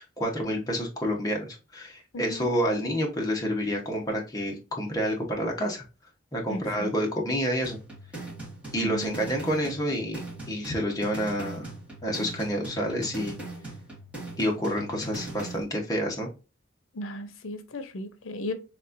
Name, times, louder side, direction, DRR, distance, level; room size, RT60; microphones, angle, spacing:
voice 1, 0.0-5.8 6.3-7.8 8.7-10.2 10.5-11.7 12.0-13.3 14.4-16.3, equal, 20° left, 1.0 m, -29 dB
voice 2, 2.1-2.5 6.5-6.9 8.8-9.2 16.9-18.5, left 1 dB, 85° left, 0.6 m, -35 dB
sound 1, 7.6-15.6, right 2 dB, 5° right, 1.8 m, -40 dB
4.2 x 3.3 x 2.5 m
head